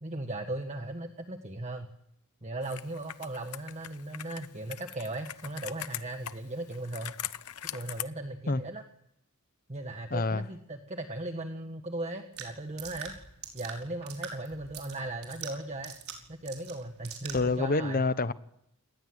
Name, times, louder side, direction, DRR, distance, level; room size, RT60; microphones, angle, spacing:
voice 1, 0.0-1.9 2.4-7.2 7.7-8.8 9.7-13.1 13.5-15.9 16.3-18.0, right 2 dB, 30° right, 1.6 m, -37 dB
Computer keyboard, 2.6-8.0, left 12 dB, 90° left, 0.9 m, -41 dB
voice 2, 10.1-10.4 17.3-18.3, left 3 dB, 40° left, 1.1 m, -27 dB
sound 1, 12.3-17.6, right 6 dB, 70° right, 5.5 m, -44 dB
28.0 x 19.5 x 8.0 m
head